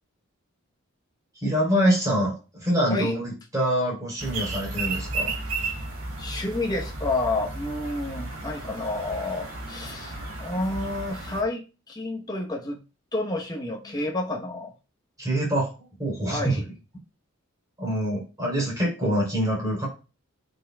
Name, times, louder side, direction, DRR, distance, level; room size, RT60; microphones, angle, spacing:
voice 1, 1.4-5.3 15.2-16.6 17.8-19.9, equal, 15° right, -3 dB, 3.3 m, -25 dB
sound 1, 4.2-11.4, right 3 dB, 75° right, 2.1 m, -34 dB
voice 2, 6.2-12.8 13.1-14.7 16.3-16.6, left 2 dB, 20° left, 1 dB, 0.9 m, -30 dB
12.0 x 5.4 x 2.3 m, 0.32 s
head